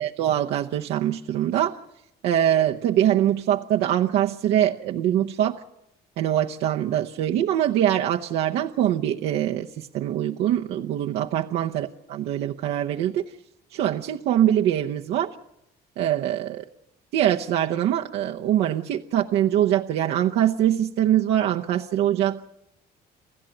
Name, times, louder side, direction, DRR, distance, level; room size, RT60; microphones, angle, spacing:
voice 1, 0.0-1.8 2.2-5.6 6.2-13.2 13.7-15.3 16.0-16.6 17.1-22.5, right 11 dB, 80° right, 1 dB, 0.9 m, -23 dB
28.5 x 15.0 x 9.0 m, 0.85 s
cardioid pair, 110°, 17 cm